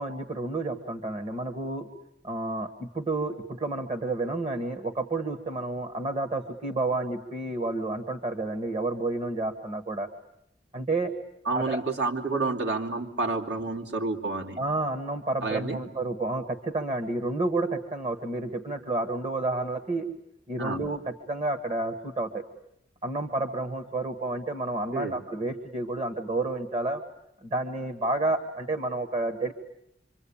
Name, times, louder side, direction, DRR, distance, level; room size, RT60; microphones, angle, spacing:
voice 1, 0.0-1.9 2.2-10.1 10.7-11.1 11.5-11.8 14.6-20.1 20.5-22.4 23.0-27.0 27.4-29.5, right 2 dB, 35° right, 8 dB, 1.5 m, -30 dB
voice 2, 11.4-14.6 15.4-15.8 20.6-20.8 24.9-25.2, right 3 dB, 70° right, 1 dB, 2.8 m, -29 dB
26.0 x 25.5 x 8.7 m, 0.79 s
head